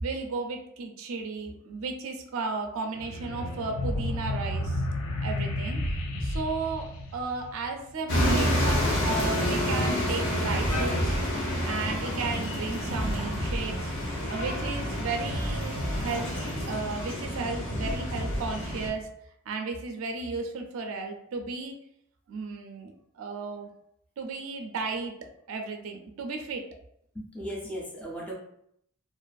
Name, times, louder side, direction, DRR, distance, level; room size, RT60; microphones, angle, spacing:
voice 1, 0.0-4.8 5.2-5.8 6.2-11.2 11.6-13.9 14.3-16.3 16.6-19.1 19.5-21.8 22.3-23.7 24.2-25.1 25.5-26.6, right 4 dB, 70° right, 4 dB, 0.4 m, -34 dB
sound 1, 3.0-7.9, left 1 dB, 80° left, 0.4 m, -33 dB
sound 2, 3.8-5.1 5.7-7.4 8.1-9.9 10.5-12.3 12.9-14.7 15.3-17.0 17.7-19.1, equal, 35° left, 0.9 m, -36 dB
sound 3, 8.1-18.9, equal, 60° left, 0.8 m, -29 dB
voice 2, 27.1-28.3, equal, 5° left, -4 dB, 0.5 m, -36 dB
2.5 x 2.4 x 2.3 m, 0.73 s
head